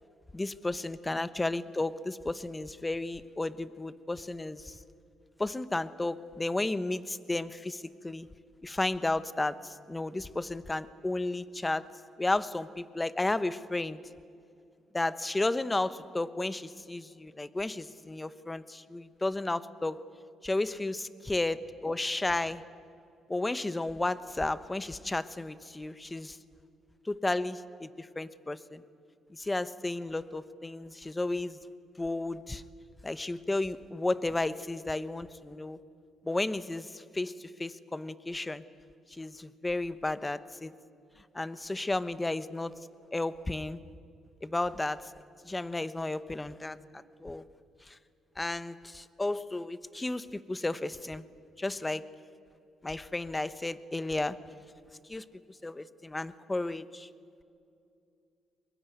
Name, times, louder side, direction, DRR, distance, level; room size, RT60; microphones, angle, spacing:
voice 1, 0.3-4.8 5.4-8.3 8.6-11.8 12.2-14.0 14.9-20.0 20.4-22.6 23.3-26.4 27.0-28.8 29.3-31.6 32.0-32.6 33.0-35.8 36.2-38.6 39.1-40.7 41.3-42.7 43.1-43.8 44.4-45.1 45.4-47.5 47.9-48.0 48.4-51.2 51.6-52.0 52.8-54.4 55.1-55.2 55.6-57.1, left 2 dB, 15° left, 15 dB, 1.1 m, -33 dB
23.5 x 22.0 x 9.3 m, 2.5 s
cardioid pair, 90°, 0 cm